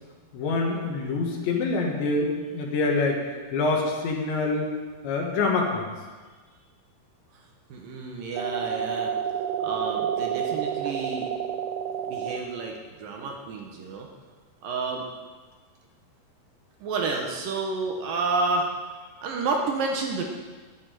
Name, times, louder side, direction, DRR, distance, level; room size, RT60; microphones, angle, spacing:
voice 1, 0.3-3.2 3.5-4.7 5.0-5.9, left 3 dB, 70° left, 0 dB, 4.0 m, -25 dB
voice 2, 7.7-9.1 9.6-11.3 12.1-14.1 14.6-15.2 16.8-18.7 19.2-20.2, right 3 dB, 70° right, 1 dB, 2.1 m, -30 dB
sound 1, 8.4-12.4, right 8 dB, 90° right, 3.2 m, -29 dB
11.5 x 7.0 x 9.9 m, 1.4 s
omnidirectional pair, 5.5 m